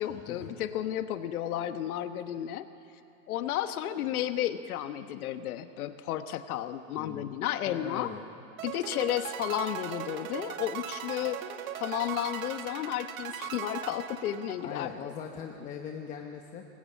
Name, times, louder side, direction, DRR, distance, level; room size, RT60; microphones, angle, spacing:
voice 1, 0.0-2.7 3.3-8.1 8.6-11.4 11.7-14.9, left 11 dB, 80° left, 9 dB, 1.3 m, -32 dB
voice 2, 7.0-7.3 7.7-8.2 14.6-16.7, left 7 dB, 20° left, 3 dB, 0.8 m, -40 dB
sound 1, 8.6-14.9, right 10 dB, 70° right, 1.9 m, -39 dB
25.0 x 21.0 x 8.5 m, 2.9 s
supercardioid pair, 175°, 43 cm